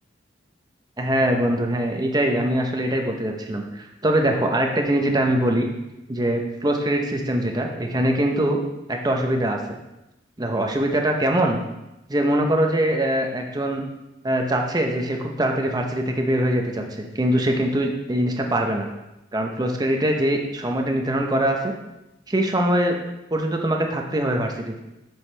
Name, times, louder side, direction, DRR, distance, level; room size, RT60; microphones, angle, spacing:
voice 1, 1.0-5.7 6.1-8.6 8.9-9.8 10.4-11.6 12.1-13.8 14.2-18.9 19.3-21.7 22.3-23.0 23.3-24.7, right 1 dB, 20° right, 2 dB, 0.8 m, -22 dB
7.4 x 6.5 x 3.3 m, 0.93 s
head